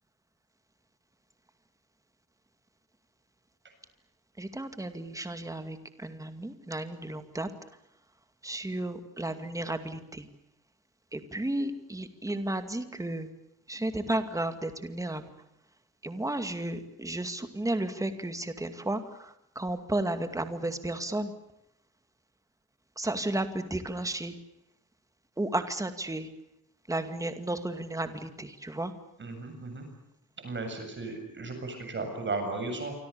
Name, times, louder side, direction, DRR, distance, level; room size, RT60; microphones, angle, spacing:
voice 1, 4.4-7.5 8.4-10.3 11.1-13.3 13.7-15.3 16.0-21.3 23.0-24.4 25.4-26.3 26.9-28.9, right 1 dB, 10° right, 9 dB, 2.3 m, -33 dB
voice 2, 29.2-29.9 30.4-32.9, right 3 dB, 35° right, 5 dB, 7.6 m, -35 dB
28.5 x 25.0 x 7.0 m, 0.82 s
wide cardioid pair, 170°, 34 cm